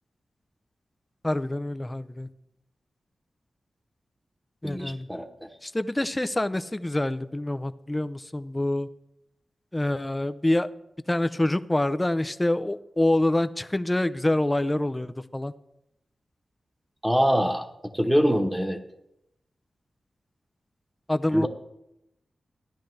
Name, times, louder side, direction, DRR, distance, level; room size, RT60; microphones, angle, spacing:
voice 1, 1.2-2.3 4.6-5.1 5.6-8.9 9.7-10.7 11.1-15.5 21.1-21.5, left 1 dB, 20° left, 12 dB, 0.5 m, -26 dB
voice 2, 4.6-5.3 17.0-17.6 17.9-18.8 21.3-21.5, equal, 5° right, 3 dB, 1.2 m, -23 dB
14.5 x 10.0 x 3.3 m, 0.84 s
cardioid pair, 60°, 0 cm